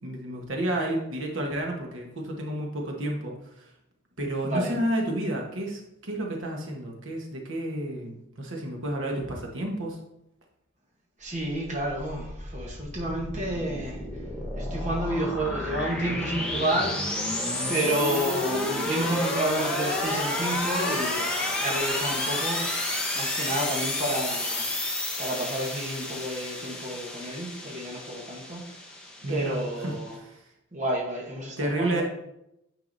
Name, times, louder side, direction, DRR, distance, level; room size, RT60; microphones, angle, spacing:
voice 1, 0.0-3.7 4.2-10.0 29.2-30.4 31.6-32.0, right 1 dB, 65° right, 0 dB, 1.2 m, -31 dB
voice 2, 4.4-4.8 11.2-14.0 14.6-17.3 17.7-22.9 23.1-24.7 25.2-28.8 29.3-30.2 30.7-32.0, right 1 dB, 35° right, -2 dB, 1.0 m, -30 dB
sound 1, 11.9-30.1, left 1 dB, 5° left, 0.9 m, -31 dB
9.2 x 4.7 x 2.6 m, 0.82 s
head